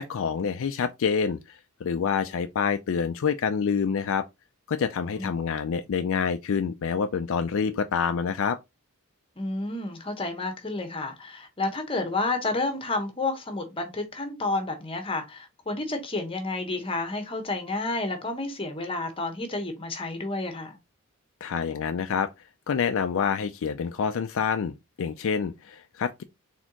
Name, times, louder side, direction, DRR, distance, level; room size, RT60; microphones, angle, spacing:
voice 1, 0.0-4.3 4.7-8.6 21.4-22.3 22.7-26.2, left 6 dB, 60° left, 0.4 m, -27 dB
voice 2, 5.0-5.3 9.4-20.8, left 2 dB, 25° left, 1.0 m, -30 dB
4.3 x 3.6 x 2.9 m
head